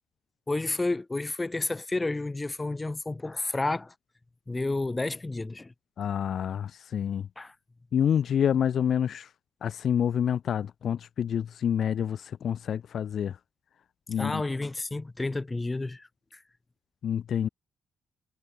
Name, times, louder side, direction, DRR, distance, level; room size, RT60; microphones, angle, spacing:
voice 1, 0.5-3.9 4.5-5.7 7.4-7.5 14.2-16.1 16.3-16.4, left 2 dB, 20° left, 2.6 m, -31 dB
voice 2, 6.0-7.3 7.9-9.3 9.6-13.4 14.1-14.4 17.0-17.5, left 8 dB, 60° left, 0.9 m, -27 dB
cardioid pair, 90°, 0 cm